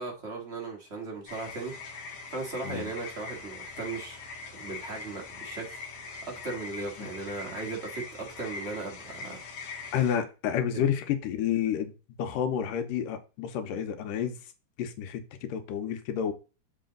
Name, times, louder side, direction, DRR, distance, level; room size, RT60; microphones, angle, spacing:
voice 1, 0.0-4.2 4.5-5.8 6.2-9.4 10.7-10.9, right 3 dB, 40° right, 0.9 m, -37 dB
sound 1, 1.3-10.2, left 4 dB, 55° left, 2.0 m, -42 dB
voice 2, 9.9-11.9 12.2-14.4 14.8-16.3, left 9 dB, 85° left, 2.5 m, -30 dB
6.7 x 4.9 x 3.8 m
omnidirectional pair, 3.8 m